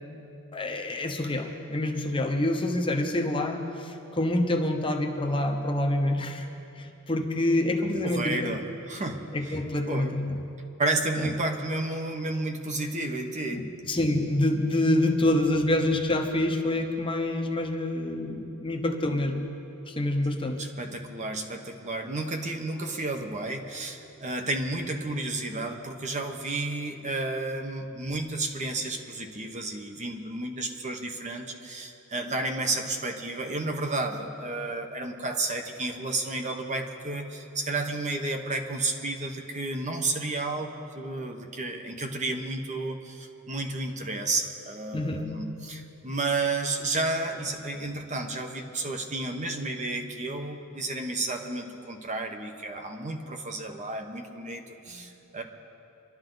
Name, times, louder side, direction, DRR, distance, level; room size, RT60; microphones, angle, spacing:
voice 1, 0.5-6.5 6.8-8.6 9.3-10.4 11.2-11.3 13.5-19.5 19.9-20.6 44.9-45.3 54.9-55.0, left 1 dB, 25° left, 3 dB, 0.9 m, -27 dB
voice 2, 8.0-9.6 9.9-10.2 10.8-13.7 20.6-55.4, right 2 dB, 35° right, 4 dB, 1.1 m, -32 dB
25.5 x 12.0 x 3.9 m, 2.8 s
head